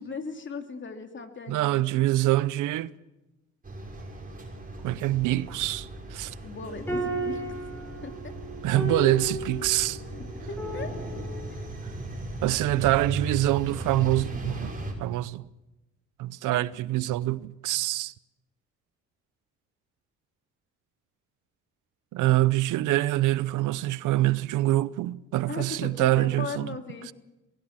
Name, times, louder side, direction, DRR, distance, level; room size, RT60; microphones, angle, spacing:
voice 1, 0.0-2.0 6.4-7.6 8.0-8.4 10.1-11.0 11.5-11.7 12.8-12.9 25.4-27.1, left 4 dB, 40° left, 2.8 m, -38 dB
voice 2, 1.5-2.9 4.8-6.4 8.6-10.0 12.4-14.7 15.0-15.5 16.2-18.1 22.1-26.8, right 16 dB, 90° right, 0.7 m, -25 dB
sound 1, 3.6-14.9, right 1 dB, 30° right, 5.6 m, -37 dB
sound 2, 6.7-11.8, right 1 dB, 5° left, 7.4 m, -34 dB
23.0 x 16.5 x 7.4 m
cardioid pair, 90°, 30 cm